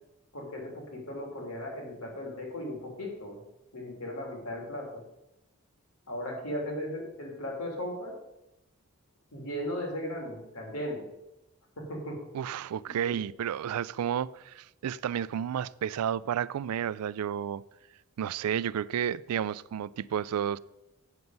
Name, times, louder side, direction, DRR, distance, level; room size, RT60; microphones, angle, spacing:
voice 1, 0.3-3.4 3.7-4.8 6.1-8.1 9.3-11.0 11.8-12.2 12.9-13.2, left 1 dB, 85° left, 3.2 m, -37 dB
voice 2, 12.3-17.6 18.2-20.6, right 9 dB, 90° right, 0.3 m, -31 dB
8.0 x 7.8 x 5.4 m
head